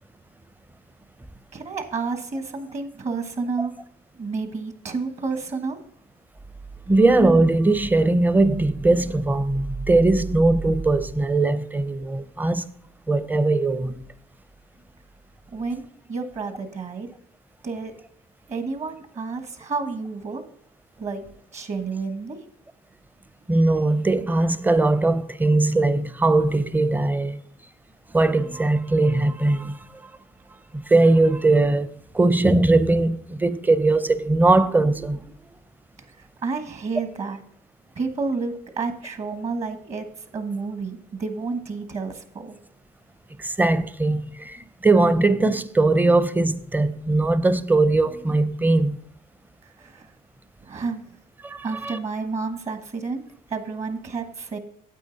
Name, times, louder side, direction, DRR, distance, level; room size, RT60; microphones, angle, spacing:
voice 1, 1.5-3.7 4.2-5.8 15.5-17.1 17.6-17.9 18.5-20.4 21.0-21.2 21.5-22.4 36.1-36.2 36.4-37.4 37.9-40.1 40.3-42.5 49.6-50.1 50.6-51.1 51.6-53.2 53.5-54.6, right 4 dB, 40° right, 1.3 m, -30 dB
voice 2, 6.9-12.6 13.1-14.0 23.5-27.4 28.1-29.8 30.7-31.9 32.1-35.2 43.4-49.0 51.4-52.0, right 2 dB, 10° right, 0.6 m, -20 dB
9.2 x 8.3 x 3.9 m
cardioid pair, 110°, 17 cm